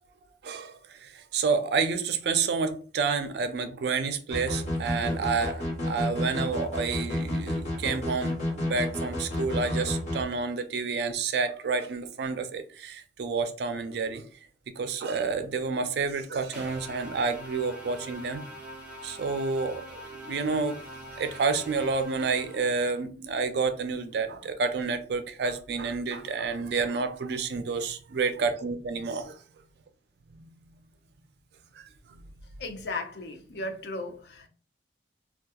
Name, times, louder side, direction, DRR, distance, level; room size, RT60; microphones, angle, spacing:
voice 1, 0.4-14.2 14.8-18.4 19.0-20.8 21.2-29.4 30.3-30.5 31.8-32.2, right 4 dB, 65° right, 0.4 m, -29 dB
sound 1, 4.3-10.2, left 1 dB, 40° left, 1.0 m, -30 dB
sound 2, 16.5-23.0, equal, 5° right, 0.7 m, -44 dB
voice 2, 32.6-34.5, left 2 dB, 60° left, 0.5 m, -36 dB
2.8 x 2.2 x 2.3 m
head